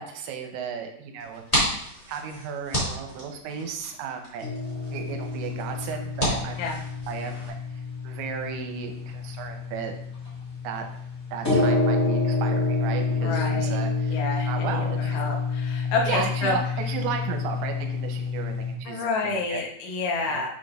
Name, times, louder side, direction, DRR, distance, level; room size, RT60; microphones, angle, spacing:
voice 1, 0.0-1.8 2.1-4.5 4.9-6.6 7.1-9.9 10.6-10.9 11.3-14.2 14.5-15.3 15.8-19.6 20.3-20.4, right 7 dB, 85° right, 4 dB, 3.0 m, -35 dB
sound 1, 1.2-7.5, equal, 15° left, 1.5 m, -32 dB
sound 2, 4.4-18.7, left 3 dB, 40° left, 0.9 m, -28 dB
voice 2, 13.2-13.8 14.1-16.6 18.9-20.5, left 3 dB, 80° left, 0 dB, 3.5 m, -29 dB
8.4 x 5.9 x 2.5 m, 0.70 s
omnidirectional pair, 5.3 m